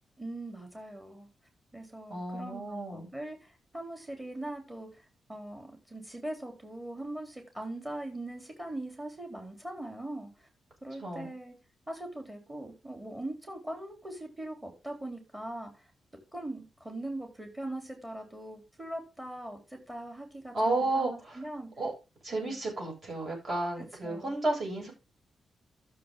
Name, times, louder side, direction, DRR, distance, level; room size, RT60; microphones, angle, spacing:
voice 1, 0.2-1.3 1.7-5.0 5.3-10.5 10.8-11.6 11.9-15.9 16.3-21.7 22.3-22.6 23.8-24.3, right 1 dB, 10° right, 4 dB, 3.6 m, -41 dB
voice 2, 2.1-3.1 11.0-11.3 20.5-21.4 21.8-21.9 22.2-24.9, right 2 dB, 40° right, -1 dB, 7.5 m, -32 dB
13.0 x 7.0 x 3.8 m, 0.28 s
wide cardioid pair, 135°, 0 cm